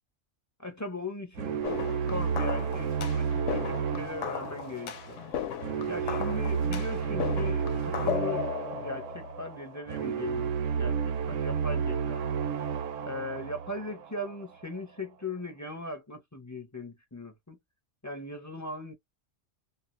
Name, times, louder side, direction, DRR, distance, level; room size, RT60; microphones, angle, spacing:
voice 1, 0.6-5.2 5.9-8.5 8.7-10.5 10.8-12.2 13.0-17.6 18.0-18.9, left 2 dB, 20° left, 0.6 m, -39 dB
sound 1, 1.4-14.4, right 7 dB, 80° right, 0.9 m, -31 dB
sound 2, 1.6-9.8, left 9 dB, 80° left, 0.9 m, -36 dB
2.5 x 2.2 x 2.9 m
omnidirectional pair, 1.3 m